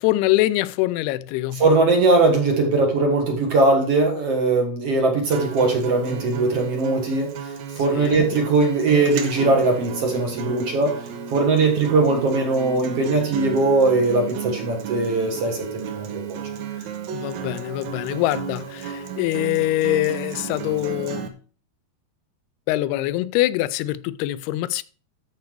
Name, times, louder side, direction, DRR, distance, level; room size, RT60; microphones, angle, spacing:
voice 1, 0.0-1.6 7.9-8.3 17.1-21.3 22.7-24.8, left 16 dB, 85° left, 2.5 m, -24 dB
voice 2, 1.6-7.3 7.7-10.9 11.3-16.4, right 3 dB, 50° right, 2.0 m, -20 dB
Acoustic guitar, 5.3-21.3, right 7 dB, 85° right, 1.6 m, -33 dB
13.5 x 5.0 x 4.7 m
omnidirectional pair, 4.7 m